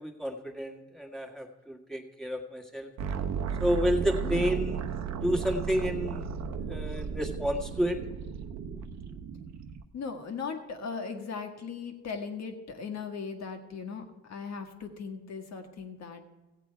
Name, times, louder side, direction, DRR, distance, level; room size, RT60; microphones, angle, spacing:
voice 1, 0.0-2.9 3.6-4.8 5.2-6.3 6.7-8.0, equal, ahead, 1 dB, 1.6 m, -30 dB
sound 1, 3.0-9.8, right 6 dB, 65° right, 0.8 m, -34 dB
voice 2, 9.9-16.3, left 5 dB, 60° left, 5 dB, 1.6 m, -38 dB
15.5 x 8.2 x 4.6 m, 1.1 s
cardioid pair, 90°, 30 cm